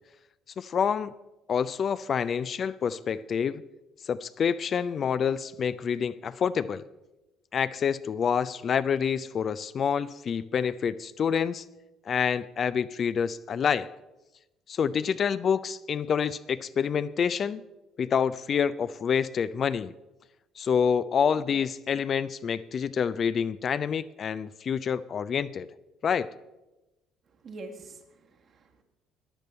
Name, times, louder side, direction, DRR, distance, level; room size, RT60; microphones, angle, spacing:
voice 1, 0.6-1.1 1.5-3.6 4.0-6.8 7.5-11.6 12.1-13.9 14.7-17.6 18.0-19.9 20.6-25.7 26.0-26.3, left 7 dB, 45° left, 14 dB, 0.4 m, -27 dB
voice 2, 27.4-28.8, right 2 dB, 50° right, 3 dB, 1.7 m, -45 dB
15.0 x 10.5 x 4.3 m, 1.0 s
hypercardioid pair, 55°, 0 cm